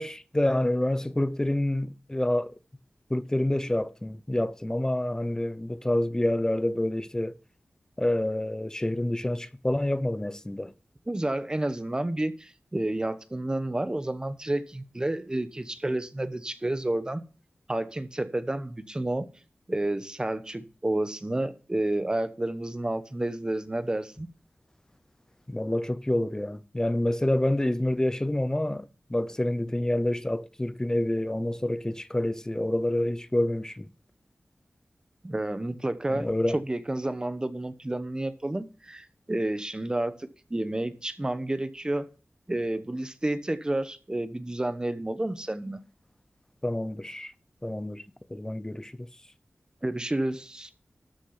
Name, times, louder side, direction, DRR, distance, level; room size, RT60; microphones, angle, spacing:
voice 1, 0.0-2.5 3.1-7.4 8.0-10.7 25.5-33.9 36.1-36.6 46.6-47.3 47.6-48.0 48.3-49.1, left 1 dB, 15° left, 0.7 m, -27 dB
voice 2, 11.1-17.2 17.7-19.3 19.7-24.3 35.2-42.0 42.5-45.8 49.8-50.7, right 1 dB, 20° right, 1.0 m, -30 dB
13.0 x 6.1 x 5.7 m
wide cardioid pair, 95°, 4 cm